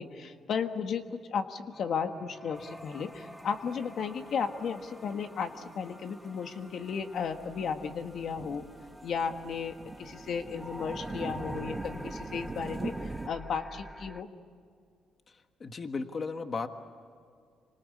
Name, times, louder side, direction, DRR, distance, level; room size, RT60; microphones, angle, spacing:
voice 1, 0.0-8.6 9.0-14.3, left 6 dB, 65° left, 7 dB, 1.5 m, -34 dB
sound 1, 1.7-14.2, equal, 5° left, 1.3 m, -47 dB
sound 2, 2.6-3.8 4.1-4.2 4.6-4.8 5.4-5.7 6.0-6.1 6.4-13.3, right 3 dB, 20° right, 1.1 m, -42 dB
voice 2, 15.3-16.7, left 4 dB, 40° left, 7 dB, 1.5 m, -36 dB
27.5 x 25.0 x 8.5 m, 2.2 s
cardioid pair, 90°, 0 cm